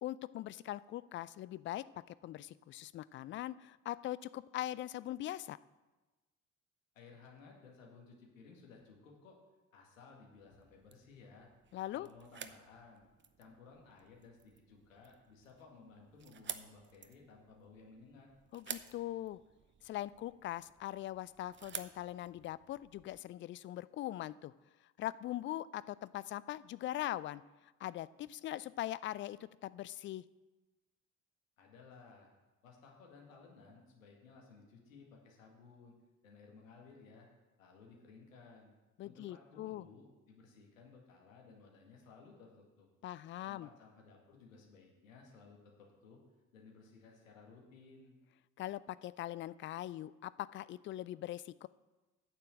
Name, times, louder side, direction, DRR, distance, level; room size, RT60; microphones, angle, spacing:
voice 1, 0.0-5.6 11.7-12.1 18.5-19.4 19.8-24.5 25.0-27.4 27.8-30.2 39.0-39.9 43.0-43.7 48.6-51.7, left 14 dB, 30° left, 17 dB, 0.4 m, -41 dB
voice 2, 6.9-9.4 9.7-11.5 11.9-13.0 13.4-18.3 31.6-32.3 32.6-35.9 36.2-37.3 37.6-38.7 39.0-42.9 43.5-46.2 46.5-48.2, left 4 dB, 75° left, 0 dB, 2.1 m, -58 dB
sound 1, 10.3-23.2, right 8 dB, 30° right, 0.8 m, -52 dB
9.6 x 6.8 x 7.4 m, 1.2 s
figure-of-eight pair, 50°, 40 cm